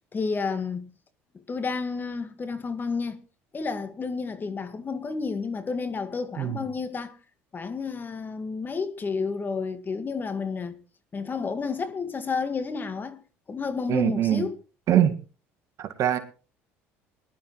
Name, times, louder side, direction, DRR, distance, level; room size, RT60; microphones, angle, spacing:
voice 1, 0.1-0.9 1.5-3.2 3.5-7.2 7.5-10.8 11.1-13.2 13.5-14.5, left 4 dB, 30° left, 1.8 m, -31 dB
voice 2, 13.9-14.5 14.9-15.2 15.8-16.2, right 11 dB, 55° right, 1.8 m, -23 dB
20.0 x 11.5 x 3.2 m
hypercardioid pair, 75°, 6 cm